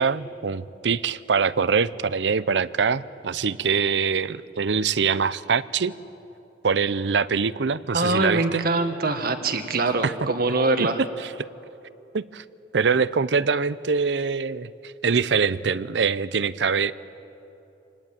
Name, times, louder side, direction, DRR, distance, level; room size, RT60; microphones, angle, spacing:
voice 1, 0.0-5.9 6.6-8.6 10.0-10.1 10.8-11.3 12.1-12.4 12.7-16.9, right 5 dB, 70° right, 16 dB, 0.6 m, -24 dB
voice 2, 7.9-11.0, right 2 dB, 55° right, 7 dB, 1.7 m, -23 dB
26.0 x 20.0 x 9.0 m, 2.9 s
head